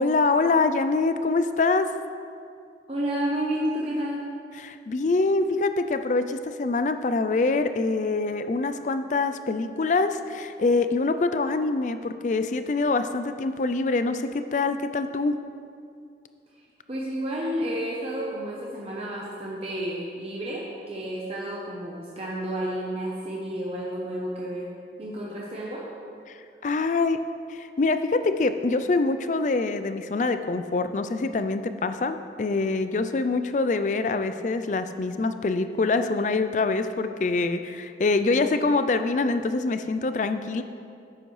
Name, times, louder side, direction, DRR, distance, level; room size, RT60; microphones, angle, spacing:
voice 1, 0.0-1.9 4.6-15.4 26.3-26.4 26.6-27.2 27.5-40.6, left 3 dB, 45° left, 10 dB, 0.4 m, -25 dB
voice 2, 2.9-4.3 16.9-24.7 25.0-25.9, right 1 dB, 35° right, -4 dB, 0.8 m, -31 dB
10.5 x 7.8 x 3.2 m, 2.4 s
head